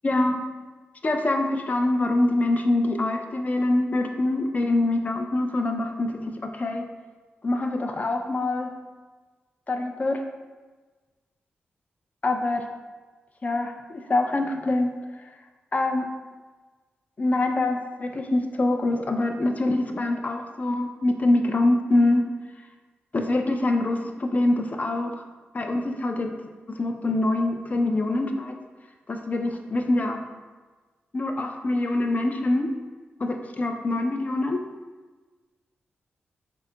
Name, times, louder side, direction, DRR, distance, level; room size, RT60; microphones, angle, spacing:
voice 1, 0.0-0.4 1.0-6.9 7.4-8.8 9.7-10.2 12.2-12.6 13.4-14.9 15.7-16.1 17.2-22.2 23.1-25.2 25.5-26.4 26.7-28.6 29.1-30.2 31.1-32.7 33.2-34.6, left 2 dB, 40° left, 5 dB, 0.4 m, -24 dB
3.8 x 2.8 x 2.2 m, 1.3 s
cardioid pair, 50°, 4 cm